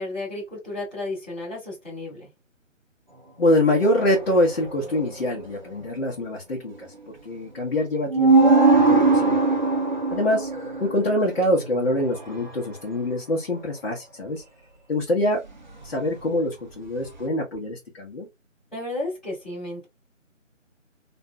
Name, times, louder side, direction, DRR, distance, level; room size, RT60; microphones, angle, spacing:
voice 1, 0.0-2.3 18.7-19.9, left 2 dB, ahead, 1.0 m, -33 dB
voice 2, 3.4-6.9 7.2-9.4 10.1-10.5 10.8-14.4 14.9-15.4 15.8-18.3, left 1 dB, 50° left, 1.0 m, -24 dB
sound 1, 3.7-5.4 7.8-7.9 8.1-12.6 15.7-16.3 17.0-17.2, right 3 dB, 35° right, 0.5 m, -21 dB
2.9 x 2.6 x 2.2 m
figure-of-eight pair, 155°, 39 cm